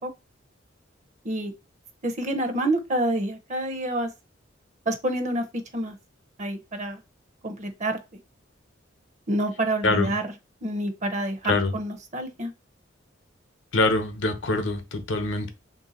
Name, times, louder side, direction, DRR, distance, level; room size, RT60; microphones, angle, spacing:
voice 1, 2.0-4.1 4.9-6.0 6.4-7.0 7.4-8.0 9.3-10.4 10.6-12.5, right 1 dB, 40° right, 0.7 m, -28 dB
voice 2, 13.7-15.5, left 2 dB, 75° left, 0.8 m, -24 dB
3.3 x 2.7 x 4.1 m
head